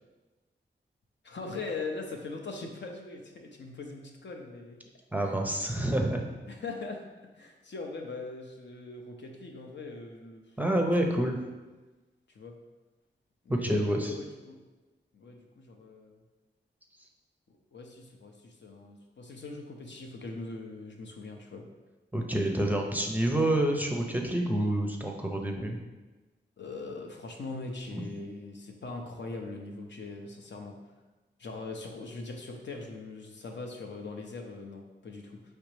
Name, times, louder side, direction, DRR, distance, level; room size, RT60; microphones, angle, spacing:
voice 1, 1.2-4.8 5.2-5.4 6.5-7.0 7.4-10.4 11.0-11.4 12.3-12.5 13.4-14.6 15.1-16.2 17.5-21.7 26.6-30.8 31.4-35.4, left 3 dB, 70° left, 2 dB, 0.6 m, -41 dB
voice 2, 5.1-6.3 10.6-11.4 13.5-14.1 22.1-25.8 27.9-28.0, right 1 dB, 10° right, 1 dB, 0.5 m, -28 dB
4.9 x 3.2 x 3.2 m, 1.2 s
wide cardioid pair, 75°, 20 cm